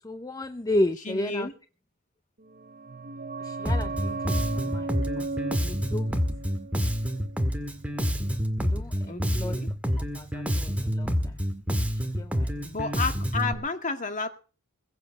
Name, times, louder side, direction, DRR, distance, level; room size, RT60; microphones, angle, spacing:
voice 1, 0.0-1.5 3.4-5.3 5.6-6.2 8.6-9.6 10.1-11.3 11.9-12.6, left 1 dB, 15° left, 9 dB, 0.7 m, -33 dB
voice 2, 1.1-1.5 9.0-9.7 12.6-14.3, left 4 dB, 35° left, 7 dB, 2.0 m, -31 dB
sound 1, 2.5-7.9 8.2-8.3, right 3 dB, 40° right, 1.1 m, -36 dB
Bass guitar, 3.7-13.5, equal, 5° right, 1.8 m, -28 dB
22.0 x 7.6 x 6.8 m, 0.37 s
head